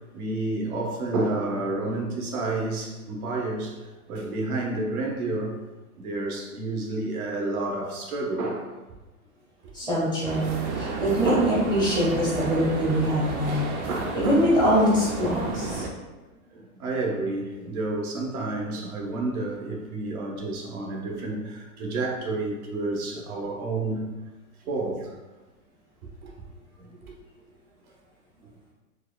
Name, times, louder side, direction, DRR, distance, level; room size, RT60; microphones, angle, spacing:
voice 1, 0.1-3.7 4.1-5.5 6.0-8.7 11.3-11.6 13.9-14.5 16.5-24.1 24.7-25.1 26.2-26.3 27.0-27.1, right 2 dB, 75° right, 0 dB, 1.0 m, -30 dB
voice 2, 9.7-13.6 14.1-15.8, equal, 10° right, -8 dB, 0.5 m, -23 dB
sound 1, 10.2-15.9, right 3 dB, 55° right, 0.6 m, -32 dB
4.5 x 2.2 x 2.3 m, 1.1 s
hypercardioid pair, 135°, 45 cm